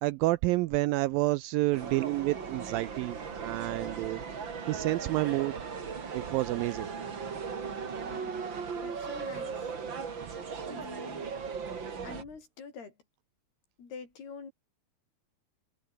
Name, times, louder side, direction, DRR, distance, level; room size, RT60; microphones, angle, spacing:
voice 1, 0.0-4.2 4.7-5.5 6.1-6.9, right 19 dB, 85° right, 2.1 m, -29 dB
sound 1, 1.7-12.2, right 6 dB, 35° right, 2.6 m, -38 dB
voice 2, 8.0-8.5 8.7-9.7 10.7-11.3 12.0-12.9 13.8-14.5, left 5 dB, 80° left, 7.6 m, -46 dB
omnidirectional pair, 4.5 m